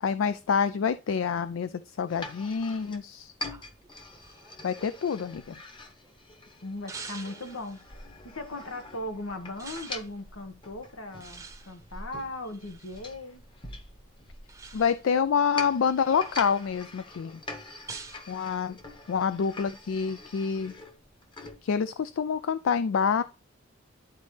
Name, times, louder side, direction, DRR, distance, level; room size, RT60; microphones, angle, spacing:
voice 1, 0.0-3.3 4.6-5.6 14.7-17.4 18.3-18.8 19.1-20.7 21.6-23.2, left 6 dB, 70° left, 0.4 m, -27 dB
sound 1, 2.1-21.6, left 2 dB, 25° left, 1.1 m, -44 dB
sound 2, 3.5-6.1 6.9-7.9 9.6-10.1 11.2-13.1 14.5-15.2 15.7-16.6 17.9-18.3, right 5 dB, 15° right, 0.7 m, -46 dB
voice 2, 6.6-7.8 8.2-13.4, left 1 dB, 90° left, 1.5 m, -38 dB
11.0 x 4.1 x 3.2 m
head